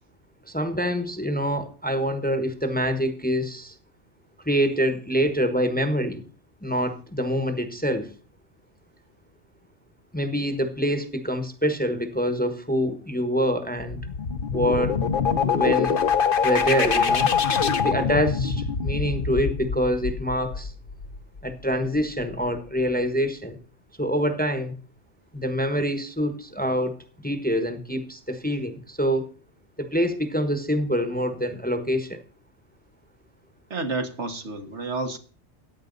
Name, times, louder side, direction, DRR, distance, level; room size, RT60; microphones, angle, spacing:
voice 1, 0.5-3.7 4.4-6.2 6.6-8.1 10.1-14.0 14.5-15.0 15.5-16.0 16.4-17.3 17.8-20.7 21.4-23.6 24.0-24.7 25.3-29.3 29.8-32.2, equal, 10° left, 1.1 m, -25 dB
sound 1, 13.8-21.4, left 6 dB, 50° left, 1.1 m, -24 dB
voice 2, 33.7-35.2, right 3 dB, 75° right, 1.8 m, -30 dB
15.0 x 9.8 x 4.0 m
omnidirectional pair, 1.2 m